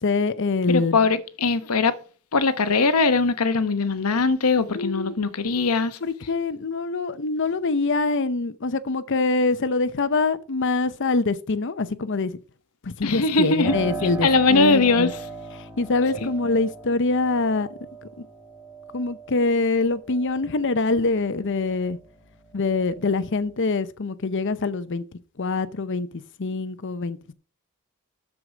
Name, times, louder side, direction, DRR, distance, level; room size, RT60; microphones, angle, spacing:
voice 1, 0.0-1.0 4.7-5.1 6.0-12.4 12.8-15.1 15.6-17.8 18.2-18.3 18.9-22.0 22.5-25.0 25.4-27.2, left 3 dB, 55° left, 0.7 m, -24 dB
voice 2, 0.7-2.0 2.3-6.0 13.0-13.8 14.2-15.2 16.2-16.3, left 3 dB, 90° left, 1.0 m, -21 dB
Piano, 13.6-22.1 22.5-23.5, right 3 dB, 10° right, 2.7 m, -38 dB
12.5 x 4.8 x 4.9 m
head